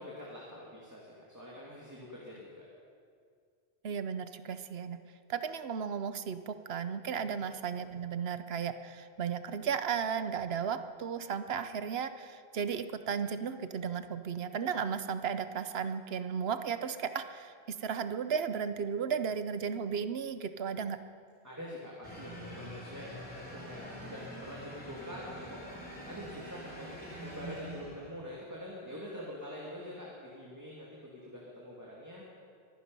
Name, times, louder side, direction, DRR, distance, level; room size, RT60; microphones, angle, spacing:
voice 1, 0.0-2.7 7.1-7.4 21.4-32.2, equal, 15° right, -5 dB, 2.4 m, -45 dB
voice 2, 3.8-5.0 5.3-21.0, right 7 dB, 75° right, 11 dB, 1.0 m, -35 dB
sound 1, 22.0-28.3, equal, 10° left, 3.1 m, -45 dB
23.5 x 11.0 x 5.4 m, 2.2 s
omnidirectional pair, 1.0 m